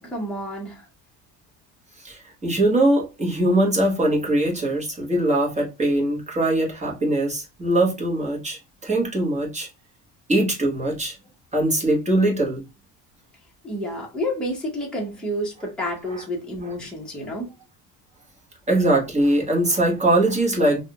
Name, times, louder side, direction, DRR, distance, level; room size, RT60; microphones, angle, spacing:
voice 1, 0.0-0.8 13.6-17.5, equal, ahead, 1.2 m, -29 dB
voice 2, 2.0-9.7 10.3-11.2 11.5-12.6 16.1-16.2 18.7-20.8, right 1 dB, 15° right, 1.2 m, -21 dB
3.5 x 2.5 x 2.2 m
cardioid pair, 125°, 43 cm